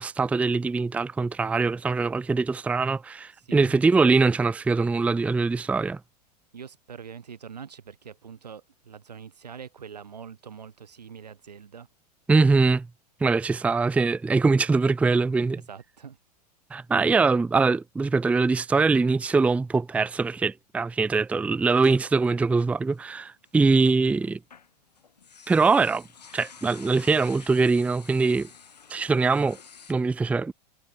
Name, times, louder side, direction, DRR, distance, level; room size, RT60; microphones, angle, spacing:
voice 1, 0.0-6.0 12.3-12.9 13.2-15.6 16.7-24.4 25.5-26.0 26.3-28.5 28.9-29.6 29.9-30.5, right 4 dB, 5° right, 0.5 m, -22 dB
voice 2, 3.4-3.8 6.5-11.9 15.7-16.2, right 7 dB, 80° right, 1.4 m, -43 dB
sound 1, 21.7-23.5 23.9-29.9, left 6 dB, 80° left, 2.7 m, -49 dB
figure-of-eight pair, 95°, 21 cm